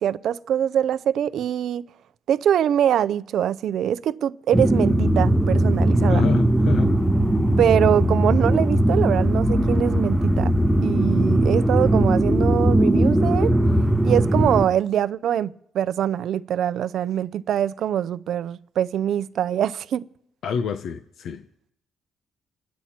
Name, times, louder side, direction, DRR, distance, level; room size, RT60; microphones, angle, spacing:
voice 1, 0.0-1.9 2.3-6.2 7.6-10.5 10.8-13.5 14.0-20.1, right 10 dB, 70° right, 0.5 m, -23 dB
sound 1, 4.5-14.7, right 1 dB, 5° right, 1.0 m, -19 dB
voice 2, 6.1-6.9 20.4-21.4, left 6 dB, 75° left, 0.9 m, -26 dB
28.0 x 10.5 x 4.4 m
cardioid pair, 90°, 0 cm